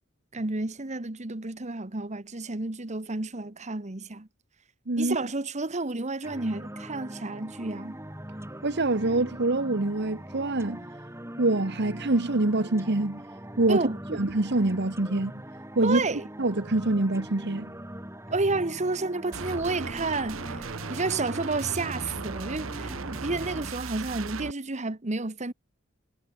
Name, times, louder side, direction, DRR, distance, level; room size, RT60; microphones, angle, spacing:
voice 1, 0.3-4.3 5.0-8.0 13.7-14.2 15.8-16.2 18.3-25.5, right 3 dB, 35° right, 1.4 m, -31 dB
sound 1, 6.2-23.7, equal, 15° right, 6.0 m, -41 dB
voice 2, 8.6-10.8 11.4-13.2 13.6-15.4 15.7-16.0 16.4-17.7, right 2 dB, 55° right, 1.4 m, -25 dB
sound 2, 19.3-24.5, right 4 dB, 80° right, 1.1 m, -37 dB
head